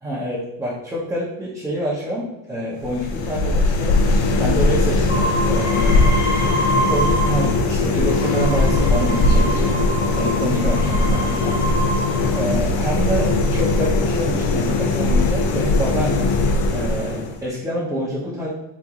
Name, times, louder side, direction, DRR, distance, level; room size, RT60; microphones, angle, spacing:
voice 1, 0.0-4.0 4.4-6.0 6.9-9.8 10.1-11.6 12.3-16.4 16.7-18.5, equal, 5° right, -9 dB, 0.8 m, -26 dB
sound 1, 2.8-17.5, left 2 dB, 70° left, 0.7 m, -19 dB
sound 2, 5.1-7.6 8.0-12.5 13.3-13.9, right 2 dB, 25° left, 0.6 m, -27 dB
3.0 x 2.6 x 3.6 m, 0.90 s
cardioid pair, 130°, 46 cm